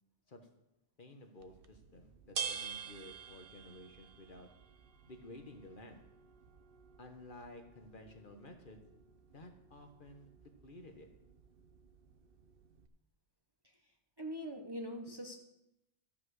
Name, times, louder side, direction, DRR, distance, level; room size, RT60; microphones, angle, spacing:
voice 1, 1.0-4.5 5.1-6.0 7.0-8.8 9.3-11.1, left 1 dB, 50° left, 5 dB, 1.3 m, -53 dB
sound 1, 1.4-12.9, right 6 dB, 60° right, 0.9 m, -49 dB
voice 2, 13.6-15.4, equal, 25° right, 3 dB, 0.9 m, -44 dB
13.0 x 5.6 x 6.4 m, 0.87 s
omnidirectional pair, 1.1 m